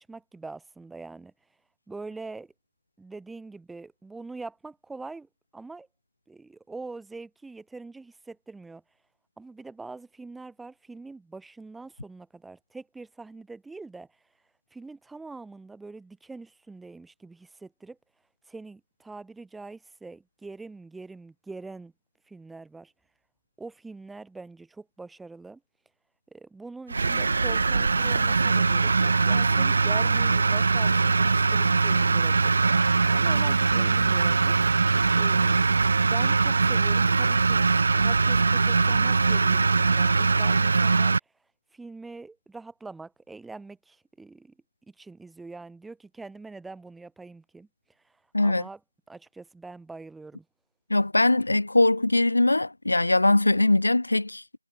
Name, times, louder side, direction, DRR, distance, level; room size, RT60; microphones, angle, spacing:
voice 1, 0.0-1.3 1.9-2.5 3.0-5.9 6.3-8.8 9.4-14.1 14.7-18.0 18.5-21.9 22.3-22.9 23.6-25.6 26.3-32.5 33.0-34.6 35.1-35.7 36.1-37.7 37.9-41.1 41.7-44.5 44.9-47.7 48.0-48.1 48.4-48.8 49.1-50.4, right 3 dB, ahead, 1.5 m, -43 dB
sound 1, 26.9-41.2, right 4 dB, 25° right, 0.5 m, -22 dB
voice 2, 50.9-54.4, left 2 dB, 55° left, 0.6 m, -21 dB
figure-of-eight pair, 175°, 0 cm